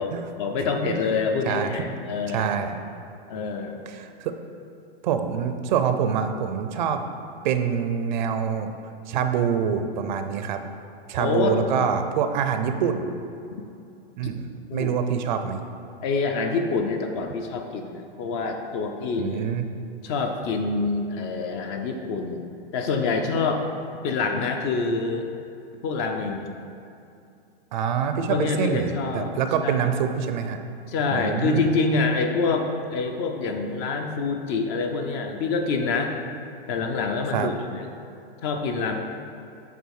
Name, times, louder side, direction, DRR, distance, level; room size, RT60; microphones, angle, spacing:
voice 1, 0.0-2.5 3.3-3.8 11.2-11.6 13.5-13.6 14.7-14.9 16.0-19.4 20.0-23.6 24.0-25.3 25.8-26.5 28.3-29.3 29.6-29.9 30.9-36.1 36.7-37.9 38.4-39.0, left 4 dB, 30° left, 4 dB, 0.5 m, -26 dB
voice 2, 0.6-1.0 1.5-1.9 2.3-2.8 3.9-4.3 5.0-7.0 7.4-8.7 9.1-10.6 11.1-13.1 14.2-15.6 19.2-19.7 27.7-30.6 31.1-31.7 37.3-37.5, right 7 dB, 50° right, 7 dB, 0.6 m, -25 dB
8.4 x 3.6 x 6.4 m, 2.6 s
hypercardioid pair, 150°, 30 cm